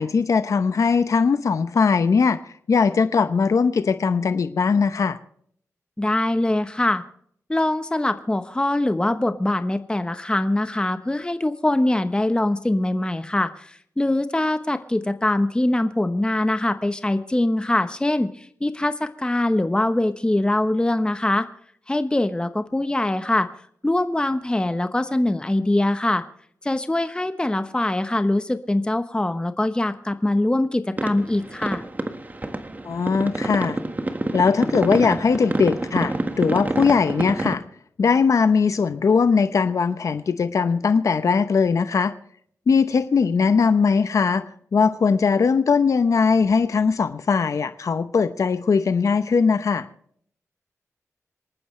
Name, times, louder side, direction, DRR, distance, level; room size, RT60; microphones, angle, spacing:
voice 1, 0.0-5.2 32.8-33.8 34.3-37.6 38.0-42.1 42.7-44.4 44.7-49.9, left 5 dB, 65° left, 11 dB, 0.8 m, -20 dB
voice 2, 6.0-7.0 7.5-21.5 21.9-23.5 23.8-26.2 26.6-31.8, left 1 dB, 15° left, 9 dB, 1.0 m, -23 dB
sound 1, 31.0-37.6, right 2 dB, 30° right, 1.6 m, -28 dB
27.0 x 9.5 x 3.2 m, 0.63 s
cardioid pair, 65°, 6 cm